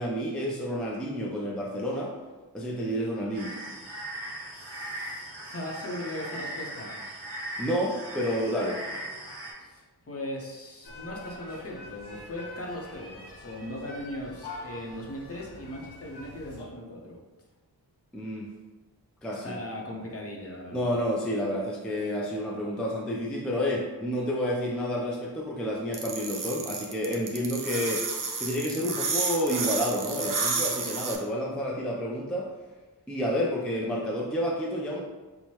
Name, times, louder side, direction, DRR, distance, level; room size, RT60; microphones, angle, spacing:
voice 1, 0.0-2.1 2.5-3.5 7.6-8.8 18.1-18.5 19.2-19.6 20.7-28.1 28.4-32.5 33.1-35.0, equal, ahead, -3 dB, 0.4 m, -30 dB
sound 1, 3.3-9.5, right 1 dB, 70° right, 1.3 m, -39 dB
voice 2, 4.5-7.0 9.6-17.2 19.4-21.0, left 1 dB, 35° left, -2 dB, 0.7 m, -39 dB
sound 2, 10.8-16.7, left 2 dB, 80° left, 0.8 m, -45 dB
sound 3, 25.9-31.2, right 4 dB, 55° right, 0.6 m, -30 dB
4.6 x 2.1 x 2.8 m, 1.2 s
wide cardioid pair, 105°, 39 cm